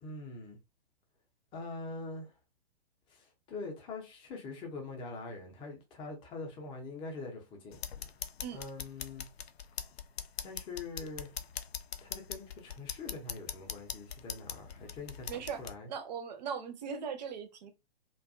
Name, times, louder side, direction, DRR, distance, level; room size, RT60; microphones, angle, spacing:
voice 1, 0.0-0.6 1.5-2.3 3.1-7.8 8.5-9.3 10.4-11.3 12.0-15.3 15.6-15.9, left 3 dB, 15° left, 0.6 m, -43 dB
sound 1, 7.7-15.7, left 8 dB, 75° left, 0.5 m, -42 dB
voice 2, 15.3-15.6 15.9-17.7, right 7 dB, 45° right, 0.6 m, -39 dB
2.5 x 2.2 x 2.4 m
figure-of-eight pair, 115°, 31 cm